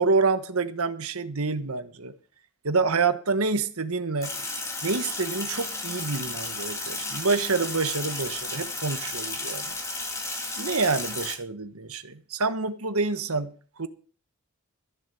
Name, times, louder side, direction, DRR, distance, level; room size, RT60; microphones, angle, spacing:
voice 1, 0.0-2.1 2.6-4.3 4.8-9.8 10.6-13.5 13.8-13.9, right 4 dB, 75° right, 1.3 m, -27 dB
Sink (filling or washing), 4.2-11.3, left 2 dB, 15° left, 2.1 m, -33 dB
14.5 x 7.4 x 6.9 m
head